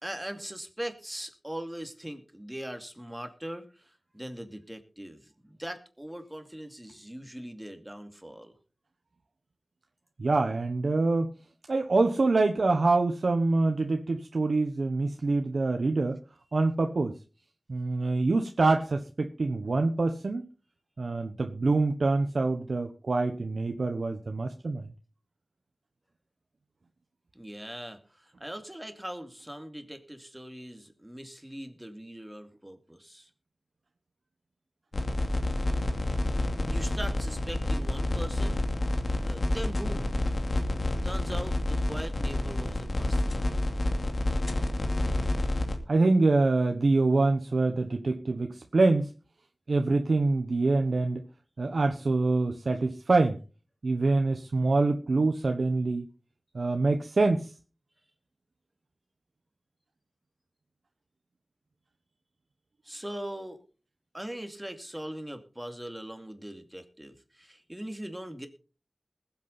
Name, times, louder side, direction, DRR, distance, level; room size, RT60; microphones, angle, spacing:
voice 1, 0.0-8.5 27.3-33.3 36.6-38.6 39.2-40.1 41.0-43.6 62.8-63.6 64.1-68.5, right 1 dB, 10° right, 6 dB, 2.5 m, -40 dB
voice 2, 10.2-11.3 11.7-16.2 16.5-17.2 17.7-20.5 21.0-24.9 45.9-49.1 49.7-51.3 51.6-53.4 53.8-56.1 56.5-57.5, right 3 dB, 85° right, 5 dB, 1.1 m, -25 dB
sound 1, 34.9-45.8, left 1 dB, 65° left, 2.5 m, -29 dB
20.5 x 8.4 x 4.1 m, 0.36 s
wide cardioid pair, 55°, 0 cm